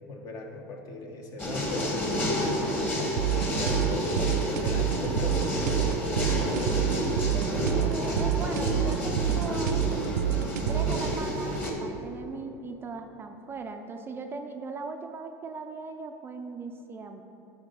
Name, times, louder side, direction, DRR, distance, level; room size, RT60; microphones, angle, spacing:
voice 1, 0.0-1.9 3.7-6.9, left 2 dB, 45° left, 2 dB, 1.2 m, -40 dB
sound 1, 1.4-11.7, equal, 20° left, 1.7 m, -29 dB
sound 2, 3.2-11.2, right 11 dB, 90° right, 0.4 m, -28 dB
voice 2, 6.7-9.8 10.7-17.2, right 4 dB, 25° right, 5 dB, 0.5 m, -39 dB
9.8 x 4.0 x 5.3 m, 2.9 s
supercardioid pair, 110°, 9 cm